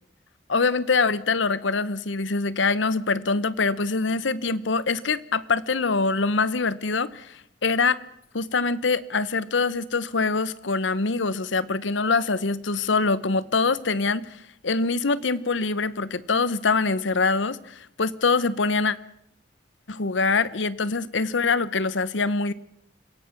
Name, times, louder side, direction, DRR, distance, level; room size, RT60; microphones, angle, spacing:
voice 1, 0.5-8.0 8.3-14.4 14.6-19.0 19.9-22.5, left 4 dB, 80° left, 17 dB, 0.9 m, -24 dB
27.5 x 17.0 x 6.0 m, 0.73 s
head